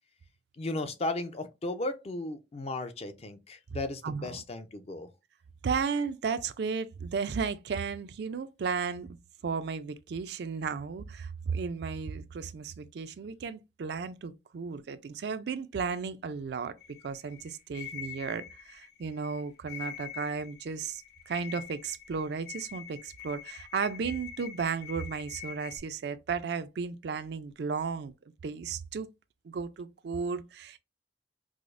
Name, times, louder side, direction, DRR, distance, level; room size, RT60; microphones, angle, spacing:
voice 1, 0.6-5.1, left 2 dB, 35° left, 0.5 m, -35 dB
voice 2, 4.0-4.4 5.6-9.1 9.4-16.7 17.0-28.1 28.4-29.1 29.4-30.8, right 5 dB, 70° right, 0.4 m, -34 dB
sound 1, 16.8-25.8, left 9 dB, 65° left, 0.8 m, -45 dB
4.8 x 2.0 x 2.5 m
head